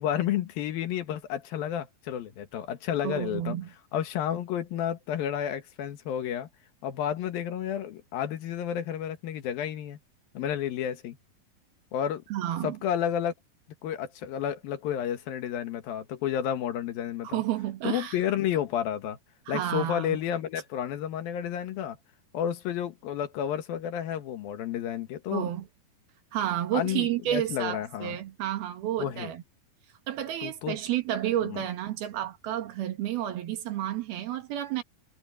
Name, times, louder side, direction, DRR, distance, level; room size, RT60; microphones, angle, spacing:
voice 1, 0.0-3.6 3.9-6.5 6.8-10.0 10.3-11.2 11.9-12.2 12.6-13.3 13.8-17.4 17.8-19.2 19.5-22.0 22.3-25.5 26.7-28.2 29.0-29.3 30.4-30.8 31.4-31.6, left 10 dB, 75° left, 3.3 m, -31 dB
voice 2, 3.0-3.7 12.3-12.8 17.2-18.2 19.5-20.2 25.3-25.7 26.3-29.4 30.1-34.8, right 12 dB, 85° right, 3.7 m, -31 dB
omnidirectional pair, 4.2 m